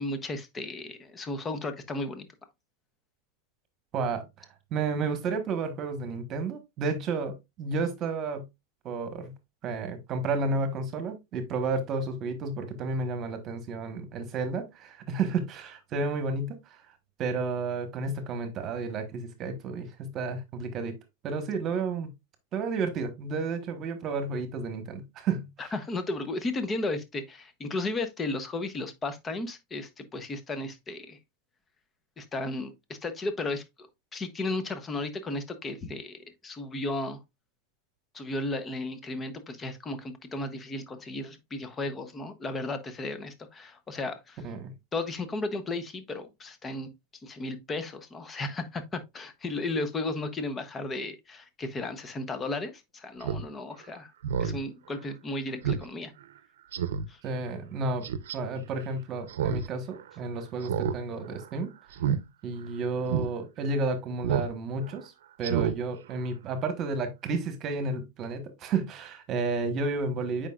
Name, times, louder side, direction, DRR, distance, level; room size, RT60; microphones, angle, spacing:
voice 1, 0.0-2.3 25.6-31.2 32.2-33.9 34.1-37.2 38.1-44.4 44.9-46.9 47.2-54.1 54.4-56.1 57.1-57.2, left 2 dB, 20° left, 0.9 m, -34 dB
voice 2, 3.9-4.5 4.7-8.4 8.8-9.3 9.6-16.6 17.2-20.9 21.2-22.1 22.5-25.7 44.4-44.7 57.2-58.1 58.3-61.7 62.4-65.1 65.4-70.5, right 3 dB, 35° right, 1.3 m, -31 dB
Speech synthesizer, 53.2-53.4 53.8-53.9 54.2-54.6 55.0-55.1 55.6-55.8 56.2-56.3 56.7-57.1 58.0-58.4 59.3-59.7 59.9-60.0 60.6-61.0 61.2-61.5 61.9-62.2 62.6-62.7 63.1-63.3 64.2-64.5 64.8-65.0 65.4-65.7 66.1-66.2, right 8 dB, 85° right, 0.7 m, -29 dB
8.1 x 5.1 x 2.4 m
supercardioid pair, 135°, 0 cm